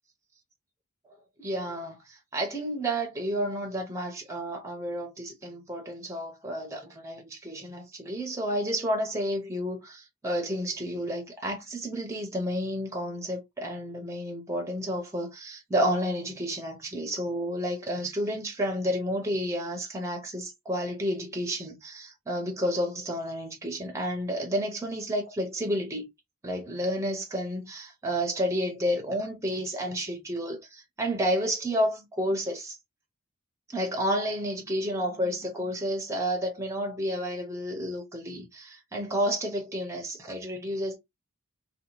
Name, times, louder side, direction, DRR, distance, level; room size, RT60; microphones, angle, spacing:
voice 1, 1.4-2.0 2.3-26.1 26.4-32.8 33.7-41.0, equal, 15° right, 0.5 m, -31 dB
2.7 x 2.1 x 2.8 m
head